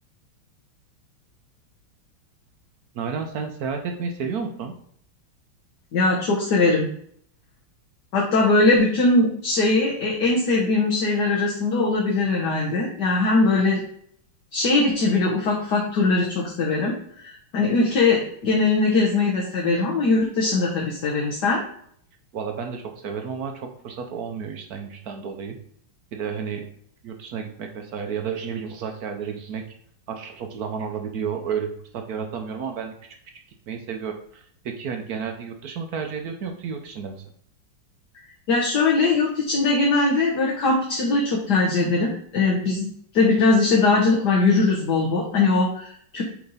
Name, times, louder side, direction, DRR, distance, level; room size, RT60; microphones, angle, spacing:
voice 1, 2.9-4.7 22.3-25.6 26.1-26.7 27.0-29.6 30.1-32.9 33.7-37.2, right 6 dB, 65° right, 4 dB, 0.9 m, -31 dB
voice 2, 5.9-6.9 8.1-13.8 14.5-21.6 38.5-46.2, left 3 dB, 55° left, -3 dB, 1.6 m, -21 dB
7.8 x 3.4 x 4.1 m, 0.64 s
omnidirectional pair, 2.4 m